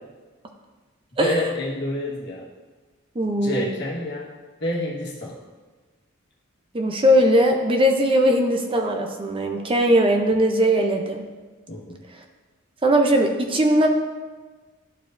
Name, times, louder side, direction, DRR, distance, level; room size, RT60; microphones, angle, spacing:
voice 1, 1.2-2.5 3.4-4.3 4.6-5.4 11.7-12.0, left 1 dB, 55° left, -3 dB, 1.4 m, -28 dB
voice 2, 3.2-3.7 6.7-11.2 12.8-13.9, equal, 25° right, 3 dB, 0.5 m, -19 dB
12.0 x 4.7 x 2.6 m, 1.3 s
head